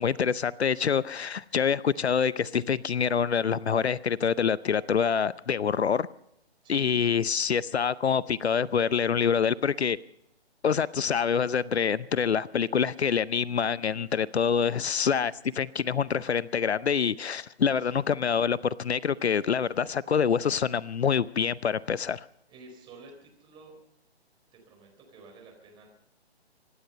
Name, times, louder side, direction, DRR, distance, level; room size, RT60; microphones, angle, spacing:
voice 1, 0.0-6.1 6.7-10.0 10.6-22.2, left 7 dB, 75° left, 0.7 m, -26 dB
voice 2, 6.6-7.1 17.8-18.0 22.5-23.7 24.5-25.9, right 3 dB, 15° right, 4.3 m, -51 dB
25.5 x 10.5 x 5.4 m
figure-of-eight pair, 140°, 33 cm